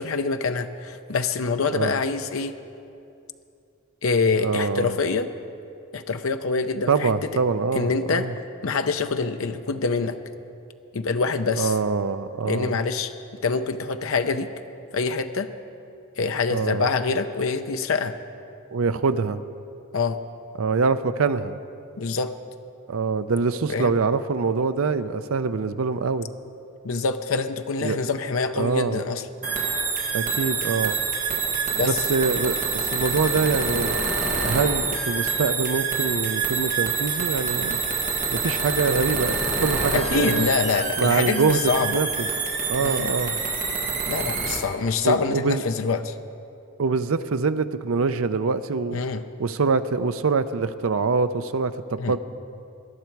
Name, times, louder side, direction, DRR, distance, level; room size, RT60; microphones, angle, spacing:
voice 1, 0.0-2.5 4.0-5.3 5.9-7.1 7.7-8.3 8.6-10.2 10.9-11.7 12.4-13.1 13.4-14.5 14.9-15.5 16.2-18.1 19.9-20.2 22.0-22.3 23.7-23.9 26.8-29.2 31.8-32.0 39.9-42.1 42.8-43.1 44.1-46.2 48.9-49.2 52.0-52.2, left 4 dB, 70° left, 8 dB, 0.6 m, -25 dB
voice 2, 4.4-5.0 6.9-8.3 11.6-12.8 16.5-16.9 18.7-19.4 20.6-21.6 22.9-26.3 27.8-28.0 28.6-29.0 30.1-31.0 31.8-32.6 32.9-34.0 34.4-37.8 38.3-39.3 39.6-40.5 41.0-42.3 42.7-43.4 45.0-45.6 46.8-49.0 49.4-52.2, right 4 dB, 70° right, 11 dB, 0.5 m, -24 dB
sound 1, 29.4-44.6, right 4 dB, 35° right, 1.6 m, -26 dB
19.5 x 11.0 x 4.6 m, 2.6 s
head